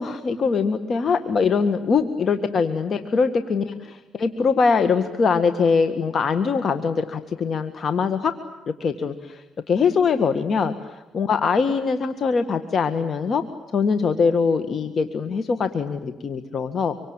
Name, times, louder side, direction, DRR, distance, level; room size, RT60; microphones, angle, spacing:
voice 1, 0.0-8.3 8.8-13.4 13.7-16.9, left 5 dB, 50° left, 9 dB, 1.7 m, -22 dB
26.0 x 24.5 x 9.0 m, 1.1 s
cardioid pair, 90°, 0 cm